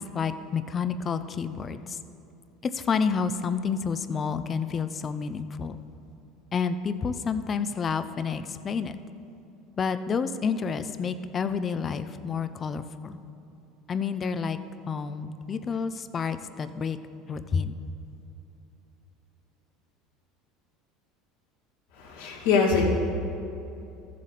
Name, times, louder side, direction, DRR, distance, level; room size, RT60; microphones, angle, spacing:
voice 1, 0.0-1.8 2.7-5.8 6.5-8.9 9.8-13.2 13.9-14.6 14.9-17.0 17.3-17.8, left 6 dB, 25° left, 11 dB, 0.4 m, -29 dB
voice 2, 22.0-22.8, left 5 dB, 85° left, -3 dB, 2.3 m, -23 dB
14.0 x 7.4 x 4.1 m, 2.8 s
cardioid pair, 150°, 0 cm